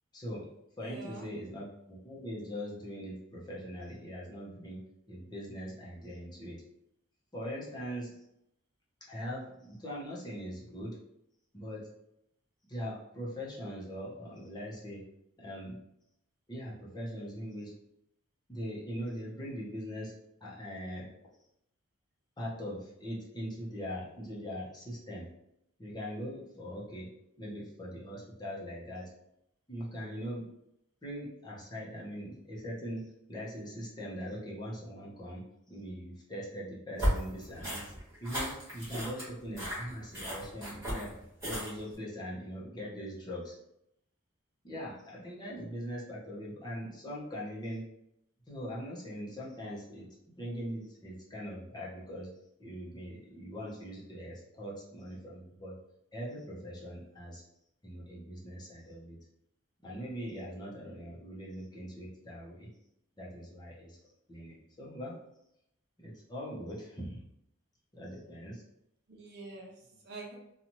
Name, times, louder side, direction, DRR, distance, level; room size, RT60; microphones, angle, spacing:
voice 1, 0.1-0.5 0.8-4.8 5.1-6.6 7.3-8.1 9.0-11.0 11.5-11.9 12.7-15.0 15.4-15.8 16.5-17.7 18.5-21.1 22.4-25.3 25.8-27.1 27.4-29.1 29.7-30.4 31.0-35.4 35.7-37.9 38.2-41.1 41.4-43.6 44.6-47.8 48.5-52.3 52.6-55.8 56.1-57.4 57.8-59.2 59.8-62.7 63.2-64.0 64.3-65.2 66.0-67.2 67.9-68.6, equal, 20° left, -5 dB, 0.8 m, -41 dB
voice 2, 0.8-1.3 69.1-70.3, right 3 dB, 55° right, -2 dB, 0.7 m, -46 dB
sound 1, 37.0-41.9, equal, 15° right, 1.3 m, -35 dB
2.8 x 2.4 x 2.9 m, 0.79 s
head